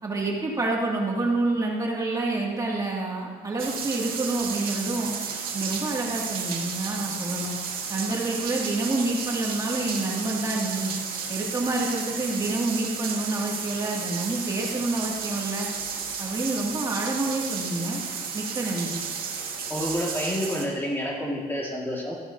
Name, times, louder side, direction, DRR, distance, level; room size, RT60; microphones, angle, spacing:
voice 1, 0.0-5.2 5.5-7.5 7.9-10.9 11.3-15.7 16.2-18.0 18.3-19.0, right 2 dB, 20° right, -3 dB, 2.3 m, -28 dB
sound 1, 3.6-20.7, right 6 dB, 65° right, 1.8 m, -33 dB
voice 2, 19.7-22.1, equal, 15° left, -3 dB, 1.9 m, -29 dB
15.0 x 10.5 x 2.8 m, 1.5 s
cardioid pair, 110°, 17 cm